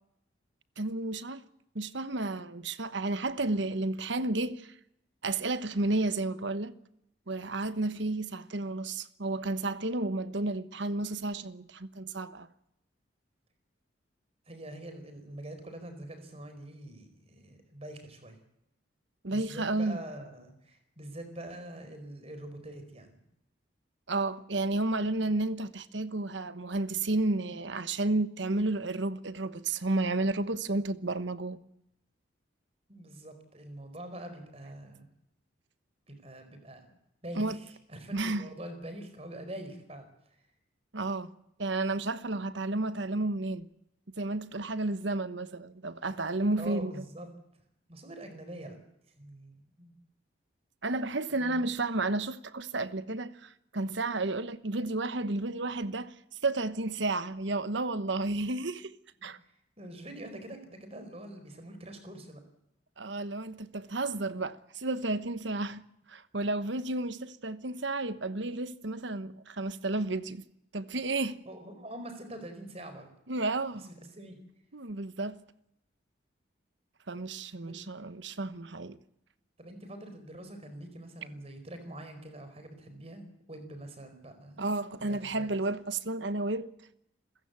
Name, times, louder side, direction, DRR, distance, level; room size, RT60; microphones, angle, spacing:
voice 1, 0.8-1.4 1.7-4.7 5.2-6.7 7.3-12.5 19.2-20.0 24.1-31.6 37.4-37.6 38.1-38.5 40.9-41.3 41.6-43.7 44.2-47.0 50.8-56.1 56.4-59.0 59.2-59.4 63.0-65.8 66.1-70.4 70.7-71.4 73.3-73.9 74.7-75.4 77.1-79.0 84.6-86.7, right 2 dB, 70° right, 1.2 m, -32 dB
voice 2, 14.5-18.4 19.3-23.1 32.9-35.1 36.1-37.0 37.2-40.1 46.6-47.3 47.9-48.8 49.2-49.9 51.3-51.7 59.4-62.4 71.4-73.1 73.8-74.4 77.6-77.7 79.6-84.6 85.0-85.5, right 1 dB, 30° right, 4.6 m, -44 dB
28.5 x 15.5 x 8.3 m
head